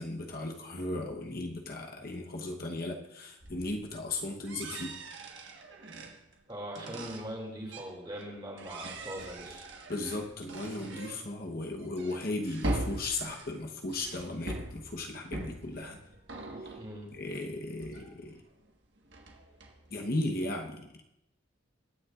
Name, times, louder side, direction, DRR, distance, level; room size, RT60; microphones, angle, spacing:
voice 1, 0.0-5.0 9.9-16.0 16.6-16.7 17.1-18.4 19.9-21.0, left 2 dB, 50° left, 2 dB, 1.0 m, -36 dB
sound 1, 3.4-8.3 8.6-18.7 19.0-20.3, right 1 dB, 60° right, 1.5 m, -41 dB
voice 2, 6.5-9.7 16.8-17.1, equal, 20° right, -1 dB, 2.4 m, -41 dB
21.0 x 9.4 x 2.5 m, 0.86 s
head